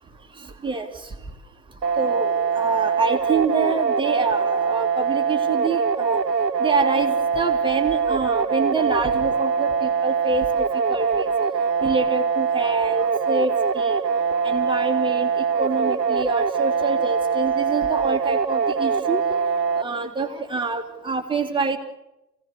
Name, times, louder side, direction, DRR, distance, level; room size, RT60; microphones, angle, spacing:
sound 1, 1.8-19.8, right 6 dB, 80° right, 1.4 m, -23 dB
voice 1, 2.0-6.2 6.6-10.5 10.9-11.3 11.8-14.0 14.4-19.2 19.8-21.8, right 4 dB, 10° right, 3 dB, 2.7 m, -26 dB
29.0 x 17.5 x 8.2 m, 0.98 s
figure-of-eight pair, 100°, 48 cm